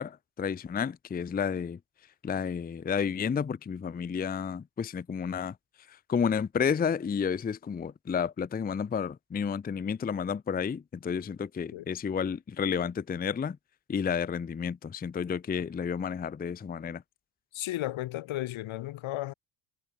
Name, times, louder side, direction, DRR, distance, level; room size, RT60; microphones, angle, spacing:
voice 1, 0.0-1.8 2.2-5.5 6.1-13.6 13.9-17.0, left 6 dB, 20° left, 0.5 m, -31 dB
voice 2, 17.5-19.3, left 15 dB, 75° left, 1.6 m, -34 dB
cardioid pair, 95°, 48 cm